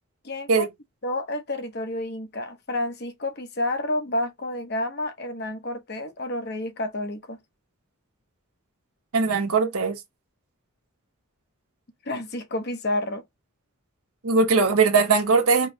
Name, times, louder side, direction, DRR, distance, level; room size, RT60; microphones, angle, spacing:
voice 1, 0.2-0.7 1.0-7.4 12.0-13.2, left 1 dB, 45° left, 0.9 m, -30 dB
voice 2, 9.1-10.0 14.2-15.7, right 4 dB, 85° right, 1.2 m, -20 dB
4.7 x 3.0 x 3.1 m
head